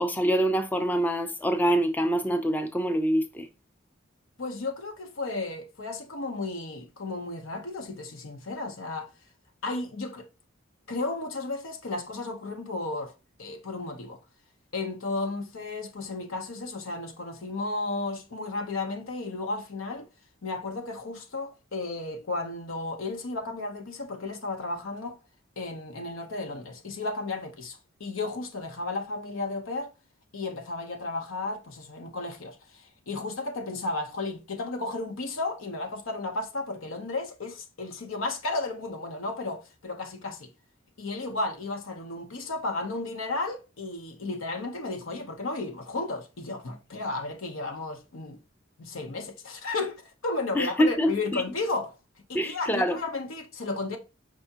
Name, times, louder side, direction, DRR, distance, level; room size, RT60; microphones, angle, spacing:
voice 1, 0.0-3.5 50.5-51.4 52.3-53.0, equal, 10° left, 0.4 m, -25 dB
voice 2, 4.4-9.1 9.6-10.3 10.9-13.1 13.4-14.2 14.7-20.1 20.4-25.2 25.6-29.9 30.3-40.5 41.0-48.4 48.8-52.0 52.3-54.0, left 3 dB, 90° left, 0.8 m, -33 dB
4.9 x 3.4 x 2.8 m
head